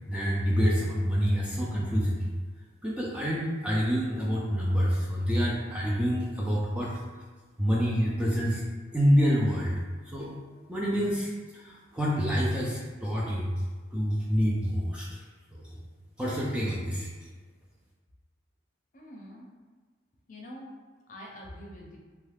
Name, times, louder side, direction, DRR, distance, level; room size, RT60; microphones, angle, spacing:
voice 1, 0.1-2.3 2.8-6.9 7.6-8.6 8.9-9.8 10.1-10.4 10.7-13.5 13.9-15.2 15.5-15.8 16.2-17.1, equal, 5° right, -5 dB, 0.3 m, -27 dB
voice 2, 18.9-19.5 20.3-20.7 21.1-22.0, equal, 40° left, -2 dB, 0.6 m, -45 dB
3.1 x 2.3 x 3.3 m, 1.4 s
head